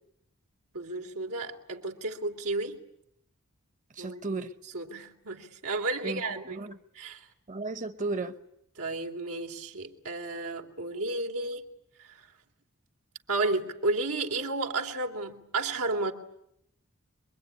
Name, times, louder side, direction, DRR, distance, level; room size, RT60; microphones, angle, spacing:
voice 1, 0.7-2.8 4.0-4.2 4.7-6.6 7.0-7.3 8.8-11.6 12.0-12.3 13.3-16.1, right 2 dB, 90° right, 3.1 m, -32 dB
voice 2, 3.9-4.5 6.0-6.8 7.5-8.4, right 3 dB, 35° right, 1.0 m, -34 dB
26.5 x 22.5 x 9.8 m
head